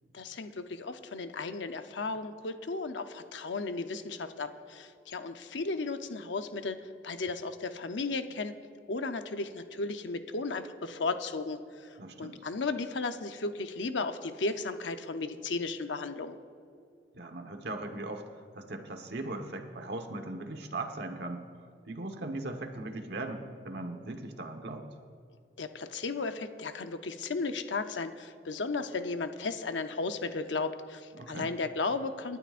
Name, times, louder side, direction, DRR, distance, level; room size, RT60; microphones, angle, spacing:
voice 1, 0.1-6.8 7.0-8.6 8.9-11.6 12.2-16.4 25.6-32.4, left 3 dB, 90° left, 8 dB, 0.8 m, -35 dB
voice 2, 12.0-12.4 17.1-18.2 18.5-21.4 21.9-24.9 31.2-31.5, right 2 dB, 65° right, 4 dB, 1.2 m, -39 dB
29.0 x 12.0 x 2.5 m, 2.4 s
head